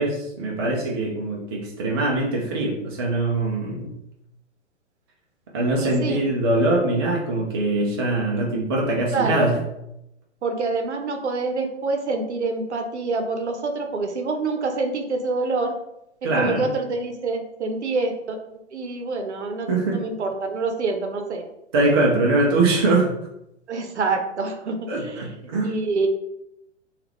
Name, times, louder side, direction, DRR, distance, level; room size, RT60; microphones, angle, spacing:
voice 1, 0.0-4.0 5.5-9.6 16.2-16.7 19.7-20.0 21.7-23.1 24.9-25.8, right 2 dB, 20° right, -2 dB, 0.4 m, -22 dB
voice 2, 5.8-6.2 9.1-9.5 10.4-15.8 16.2-21.4 23.7-25.3 25.6-26.1, right 3 dB, 65° right, 5 dB, 0.7 m, -26 dB
3.4 x 2.4 x 3.1 m, 0.83 s
figure-of-eight pair, 115°, 37 cm